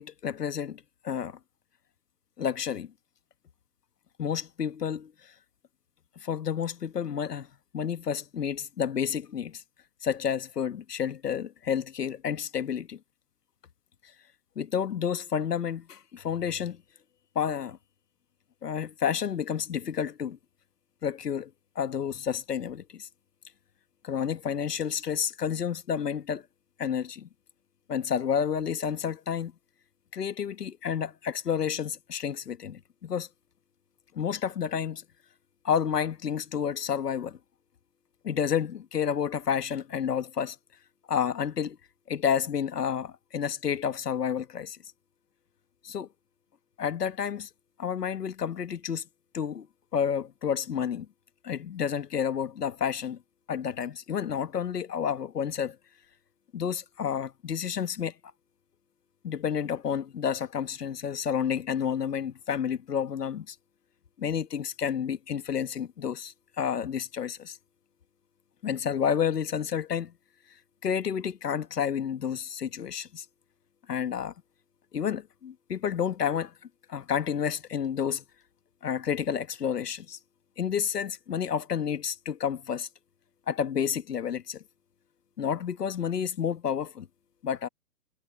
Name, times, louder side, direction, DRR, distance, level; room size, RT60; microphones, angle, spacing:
voice 1, 0.0-1.4 2.4-2.9 4.2-5.3 6.2-7.5 7.7-9.6 10.0-13.0 14.6-16.8 17.3-17.8 18.6-20.4 21.0-21.5 21.7-23.1 24.0-26.4 26.8-27.3 27.9-29.5 30.1-33.3 34.1-35.0 35.6-37.4 38.2-40.6 41.1-41.8 42.1-44.8 45.8-46.1 46.8-47.5 47.8-49.0 49.3-49.7 49.9-51.1 51.4-53.2 53.5-55.8 56.5-58.1 59.2-63.5 64.2-67.6 68.6-70.1 70.8-73.2 73.9-74.3 74.9-76.5 76.9-78.2 78.8-80.2 80.6-82.9 83.5-84.6 85.4-87.1 87.4-87.7, left 8 dB, 85° left, 1.5 m, -30 dB
hypercardioid pair, 150°, 46 cm